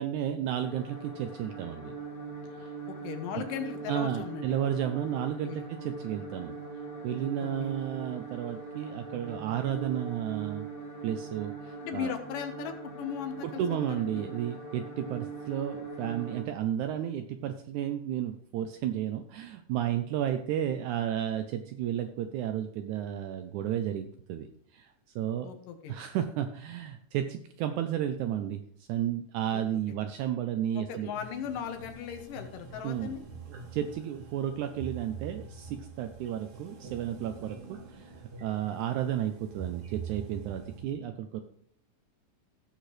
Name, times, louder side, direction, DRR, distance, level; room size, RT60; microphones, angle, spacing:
voice 1, 0.0-1.9 2.5-2.7 3.3-3.4 3.9-6.6 7.0-10.7 11.0-12.1 13.4-24.9 25.2-25.5 25.9-28.6 28.9-31.1 32.8-33.2 33.5-38.2 38.4-41.4, right 10 dB, 80° right, 8 dB, 1.8 m, -32 dB
sound 1, 0.6-16.4, right 4 dB, 25° left, 1.2 m, -41 dB
voice 2, 2.9-4.6 5.4-5.6 7.4-7.7 11.8-14.3 25.4-26.0 29.5-29.6 29.9-30.0 30.7-33.2, left 8 dB, 85° left, 5 dB, 2.7 m, -38 dB
sound 2, 31.1-40.8, right 6 dB, 60° right, 1.0 m, -45 dB
16.5 x 6.4 x 3.2 m, 0.64 s
omnidirectional pair, 3.8 m